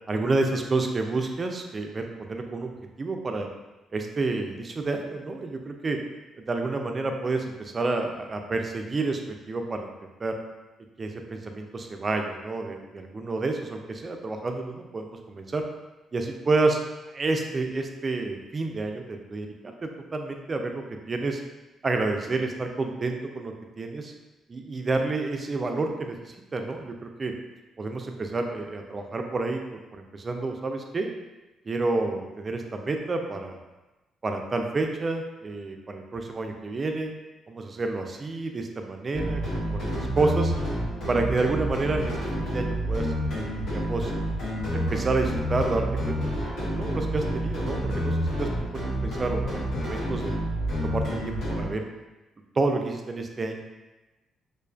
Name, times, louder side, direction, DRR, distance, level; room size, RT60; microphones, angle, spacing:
voice 1, 0.1-2.7 3.0-3.5 3.9-6.0 6.5-10.3 11.0-15.6 16.1-16.8 17.1-21.4 21.8-24.1 24.5-26.9 27.2-27.3 27.8-31.1 31.7-33.6 34.2-37.1 37.5-40.5 41.1-44.1 44.7-48.5 49.0-50.3 50.8-51.8 52.6-53.6, right 3 dB, 35° right, 4 dB, 0.3 m, -29 dB
sound 1, 39.1-51.7, equal, 80° left, 1.0 m, -29 dB
2.4 x 2.3 x 2.3 m, 1.1 s
cardioid pair, 90°, 0 cm